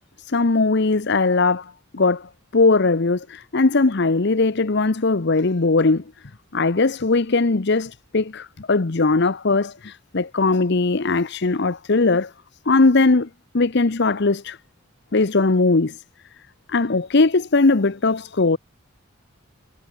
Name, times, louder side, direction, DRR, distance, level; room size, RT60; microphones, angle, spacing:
voice 1, 0.2-6.0 6.5-12.3 12.7-13.3 13.5-14.6 15.1-16.0 16.7-18.6, left 3 dB, 55° left, 0.8 m, -19 dB
head